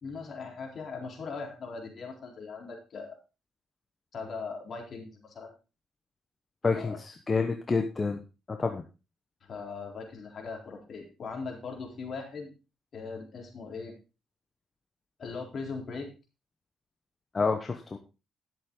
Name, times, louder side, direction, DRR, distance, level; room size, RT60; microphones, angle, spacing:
voice 1, 0.0-3.2 4.1-5.5 6.7-7.0 9.4-12.5 12.9-13.9 15.2-16.1, left 4 dB, 50° left, 1 dB, 4.0 m, -39 dB
voice 2, 6.6-8.2 8.5-8.8 17.3-18.0, left 4 dB, 30° left, 5 dB, 1.2 m, -28 dB
11.5 x 7.7 x 3.9 m, 0.30 s
cardioid pair, 90°, 0 cm